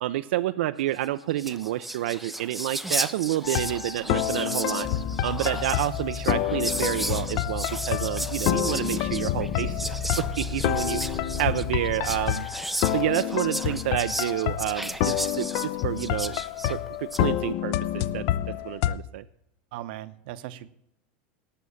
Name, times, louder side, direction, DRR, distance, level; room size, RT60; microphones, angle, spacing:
voice 1, 0.0-9.8 10.2-12.5 12.9-16.4 16.7-18.2 18.6-19.2, right 14 dB, 85° right, 10 dB, 0.5 m, -29 dB
Whispering, 1.0-1.1 1.3-17.3, right 1 dB, ahead, 0.4 m, -34 dB
sound 1, 3.4-19.0, left 13 dB, 45° left, 0.6 m, -29 dB
sound 2, 4.8-12.3, left 5 dB, 20° left, 1.2 m, -35 dB
voice 2, 19.7-20.7, right 13 dB, 65° right, 14 dB, 0.8 m, -38 dB
18.0 x 6.3 x 7.0 m, 0.77 s
supercardioid pair, 160°, 6 cm